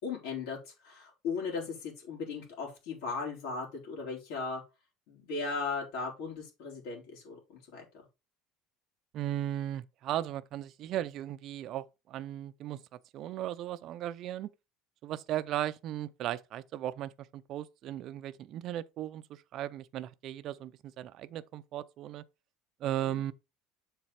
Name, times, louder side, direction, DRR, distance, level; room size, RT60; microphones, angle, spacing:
voice 1, 0.0-4.6 5.1-7.8 23.0-23.2, left 4 dB, 70° left, 3.9 m, -37 dB
voice 2, 9.1-12.8 13.1-14.5 15.0-22.2 22.8-23.3, right 12 dB, 40° right, 0.5 m, -36 dB
7.2 x 4.5 x 4.1 m
cardioid pair, 170°, 0 cm